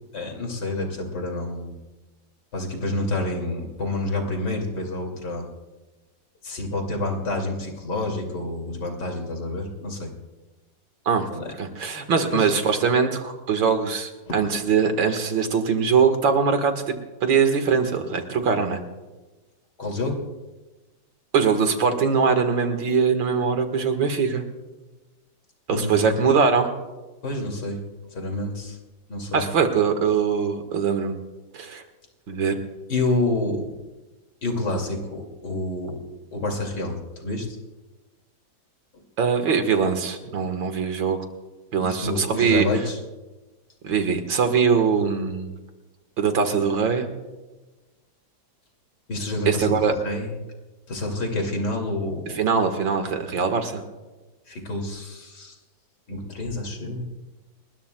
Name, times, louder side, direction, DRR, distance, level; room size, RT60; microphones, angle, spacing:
voice 1, 0.1-1.8 2.5-5.5 6.4-10.1 11.3-11.5 12.3-12.5 14.3-14.4 19.8-20.3 25.7-26.2 27.2-27.8 28.1-28.8 29.1-29.5 32.9-33.7 34.4-36.0 36.3-37.5 38.9-39.0 41.8-43.0 49.1-50.3 50.9-52.4 54.5-55.6 56.1-57.1, left 2 dB, 60° left, 2 dB, 3.2 m, -28 dB
voice 2, 11.6-16.8 17.2-18.8 21.3-24.4 25.7-26.7 29.3-31.2 31.5-31.8 32.3-32.6 39.2-41.2 41.7-42.7 43.8-45.5 46.2-47.1 49.5-49.9 52.3-53.8, right 6 dB, 75° right, 6 dB, 2.4 m, -22 dB
29.0 x 21.0 x 2.3 m, 1.2 s
omnidirectional pair, 2.1 m